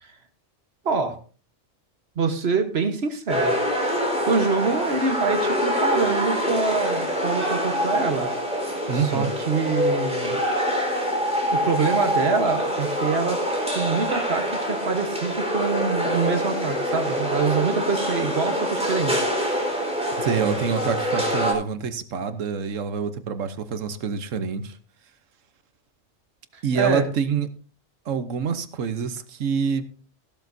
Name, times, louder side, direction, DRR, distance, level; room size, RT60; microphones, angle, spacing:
voice 1, 0.8-1.2 2.2-3.6 4.3-8.3 8.9-10.4 11.5-13.5 13.7-19.3 26.5-27.1, right 5 dB, 55° right, 7 dB, 1.5 m, -25 dB
sound 1, 3.3-21.5, equal, 5° right, 4.2 m, -25 dB
voice 2, 8.9-9.3 20.1-24.8 26.6-27.5 28.1-29.9, right 6 dB, 85° right, 10 dB, 1.3 m, -26 dB
15.5 x 12.0 x 2.7 m, 0.39 s
omnidirectional pair, 1.3 m